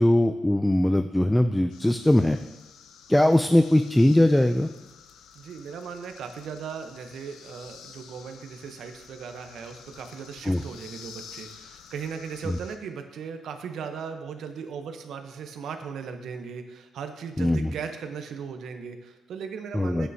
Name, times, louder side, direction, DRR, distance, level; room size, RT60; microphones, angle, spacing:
voice 1, 0.0-2.4 3.1-4.7 10.5-10.6 12.5-12.6 17.4-17.7 19.7-20.1, left 1 dB, 5° left, 8 dB, 0.3 m, -21 dB
sound 1, 1.7-12.8, left 7 dB, 80° left, 0.6 m, -49 dB
voice 2, 5.3-20.1, right 6 dB, 70° right, 6 dB, 0.9 m, -37 dB
9.3 x 8.2 x 2.8 m, 1.1 s
cardioid pair, 90°, 0 cm